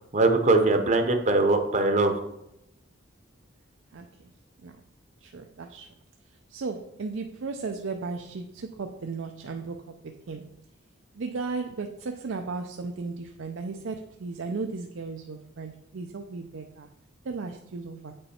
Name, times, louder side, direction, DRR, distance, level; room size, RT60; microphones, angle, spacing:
voice 1, 0.1-2.2, right 2 dB, 35° right, 5 dB, 0.7 m, -21 dB
voice 2, 5.2-5.9 6.5-10.5 11.1-16.9 17.2-18.2, right 4 dB, 70° right, 4 dB, 0.5 m, -35 dB
8.7 x 5.4 x 4.2 m, 0.84 s
head